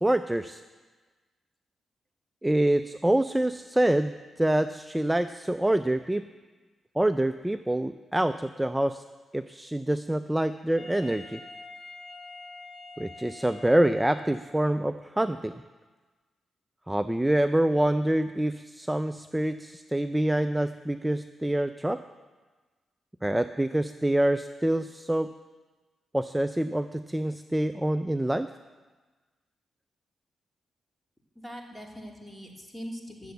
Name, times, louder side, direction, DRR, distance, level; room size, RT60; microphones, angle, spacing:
voice 1, 0.0-0.6 2.4-4.1 4.4-6.2 7.0-9.0 9.3-11.4 13.0-15.5 16.9-22.0 23.2-25.3 26.1-28.5, right 1 dB, 10° right, 11 dB, 0.4 m, -26 dB
Wind instrument woodwind instrument, 10.8-14.7, left 3 dB, 30° left, 4.2 m, -46 dB
voice 2, 31.3-33.3, equal, 10° left, 0 dB, 2.8 m, -41 dB
12.5 x 7.6 x 8.2 m, 1.3 s
cardioid pair, 65°, 0 cm